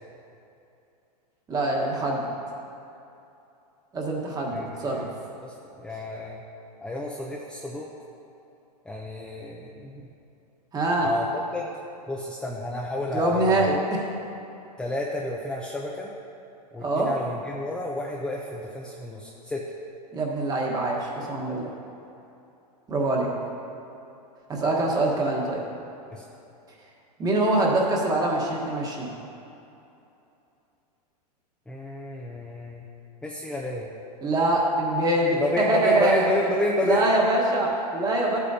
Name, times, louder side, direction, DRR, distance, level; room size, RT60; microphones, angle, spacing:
voice 1, 1.5-2.3 3.9-5.1 10.7-11.1 13.1-14.1 16.8-17.1 20.1-21.7 22.9-23.3 24.5-25.6 27.2-29.1 34.2-36.3 36.8-38.4, right 2 dB, 20° right, -1 dB, 1.3 m, -24 dB
voice 2, 4.5-5.1 5.4-6.4 6.8-7.9 8.9-10.0 11.0-11.7 12.1-13.7 14.8-16.1 16.7-19.6 26.1-26.2 31.7-32.8 33.2-33.9 35.3-37.0, left 2 dB, 5° left, -3 dB, 0.5 m, -30 dB
13.5 x 8.4 x 2.8 m, 2.8 s
hypercardioid pair, 135°, 21 cm